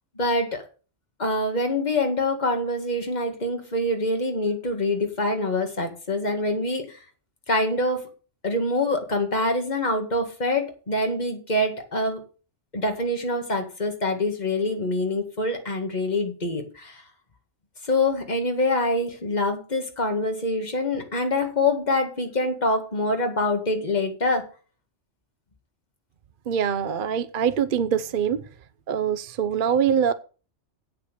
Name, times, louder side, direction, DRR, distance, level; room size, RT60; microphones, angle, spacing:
voice 1, 0.2-0.6 1.2-7.0 7.5-8.1 8.4-12.2 12.7-17.0 17.8-24.5, left 2 dB, 40° left, 2.1 m, -25 dB
voice 2, 26.5-28.4 28.9-30.1, right 8 dB, 55° right, 0.8 m, -23 dB
8.5 x 7.8 x 6.6 m
omnidirectional pair, 1.2 m